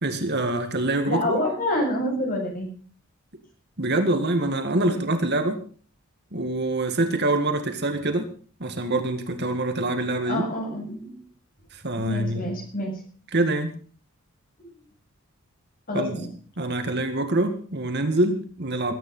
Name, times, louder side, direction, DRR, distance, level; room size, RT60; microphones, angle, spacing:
voice 1, 0.0-1.4 3.8-5.6 6.3-8.3 8.6-10.4 11.7-12.5 13.3-13.8 15.9-16.2 16.6-18.9, right 2 dB, 50° right, 7 dB, 2.1 m, -25 dB
voice 2, 1.1-2.7 4.8-5.0 10.3-11.1 12.0-13.0 15.9-16.3, left 1 dB, 40° left, 1 dB, 7.5 m, -27 dB
20.5 x 10.0 x 5.6 m, 0.42 s
head